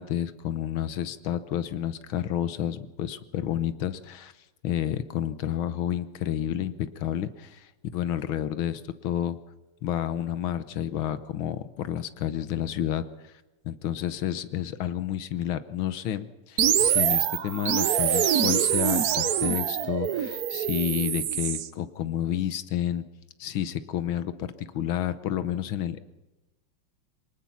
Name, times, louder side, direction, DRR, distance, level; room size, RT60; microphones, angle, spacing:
voice 1, 0.0-4.3 4.6-9.4 9.8-13.1 13.7-23.0 23.4-26.0, left 11 dB, 75° left, 13 dB, 1.7 m, -30 dB
sound 1, 16.6-21.7, right 9 dB, 60° right, 1.1 m, -25 dB
23.5 x 19.5 x 5.8 m, 1.1 s
omnidirectional pair, 2.3 m